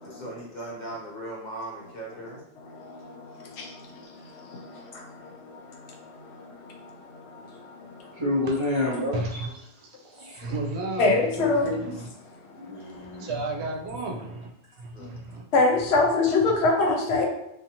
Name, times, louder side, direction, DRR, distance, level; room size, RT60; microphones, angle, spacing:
voice 1, 0.0-2.4 4.7-4.8 14.9-15.1, right 1 dB, 50° left, -3 dB, 0.6 m, -38 dB
voice 2, 8.1-9.4 10.1-10.2 12.5-13.3, left 2 dB, 30° right, -6 dB, 0.8 m, -28 dB
voice 3, 9.1-11.1 11.6-12.1 13.2-14.5 14.8-15.4, right 2 dB, 75° right, 1 dB, 0.8 m, -33 dB
voice 4, 11.0-11.8 15.5-17.3, left 3 dB, 80° left, 1 dB, 0.8 m, -21 dB
2.5 x 2.2 x 2.8 m, 0.83 s
omnidirectional pair, 1.1 m